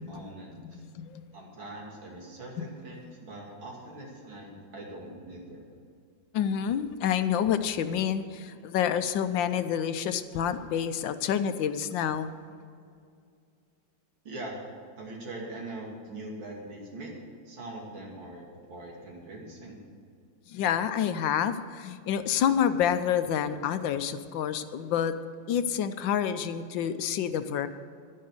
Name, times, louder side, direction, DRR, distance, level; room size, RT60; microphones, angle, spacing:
voice 1, 0.0-0.8 1.3-5.6 14.3-14.6 15.0-17.1 17.5-19.8, right 2 dB, 85° right, -1 dB, 3.4 m, -42 dB
voice 2, 0.6-1.3 2.6-2.7 6.3-12.3 20.5-25.1 25.5-27.7, left 9 dB, 80° left, 11 dB, 1.4 m, -28 dB
11.5 x 11.0 x 6.6 m, 2.3 s
omnidirectional pair, 2.1 m